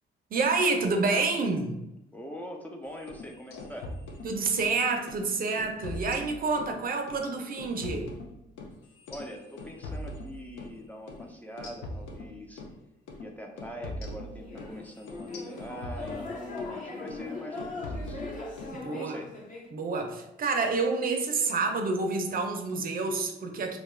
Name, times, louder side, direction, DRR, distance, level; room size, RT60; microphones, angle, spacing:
voice 1, 0.3-1.8 4.2-8.1 18.7-19.2 19.7-23.8, right 3 dB, 45° right, 4 dB, 0.5 m, -28 dB
voice 2, 2.1-3.9 9.1-12.6 13.2-18.2 18.9-19.3, equal, 10° left, 0 dB, 0.4 m, -43 dB
sound 1, 3.0-4.8 5.1-5.3 5.6-6.8 7.1-10.8 11.1-11.2 11.6-12.7 13.1-13.3 13.6-16.8 17.1-17.3 17.6-18.7, left 1 dB, 85° left, 0.6 m, -41 dB
sound 2, 14.4-19.7, left 3 dB, 40° left, 1.0 m, -40 dB
2.7 x 2.2 x 3.1 m, 0.88 s
cardioid pair, 90°, 20 cm